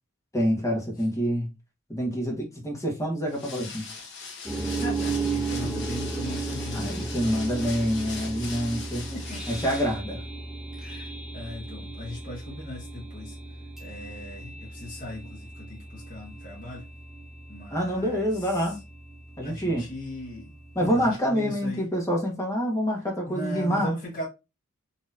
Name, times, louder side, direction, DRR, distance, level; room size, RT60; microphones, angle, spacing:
voice 1, 0.3-1.5 1.9-3.9 6.7-9.0 9.5-10.2 17.7-18.8 19.4-19.8 20.7-23.9, equal, 15° left, 1.3 m, -27 dB
sound 1, 3.3-10.0, left 4 dB, 55° left, 1.2 m, -40 dB
sound 2, 4.4-21.1, right 3 dB, ahead, 0.8 m, -35 dB
voice 2, 4.5-7.7 9.1-9.4 10.8-13.4 13.8-16.8 17.5-18.7 19.4-21.8 23.3-24.3, left 1 dB, 40° left, 1.3 m, -39 dB
4.2 x 2.9 x 2.7 m
head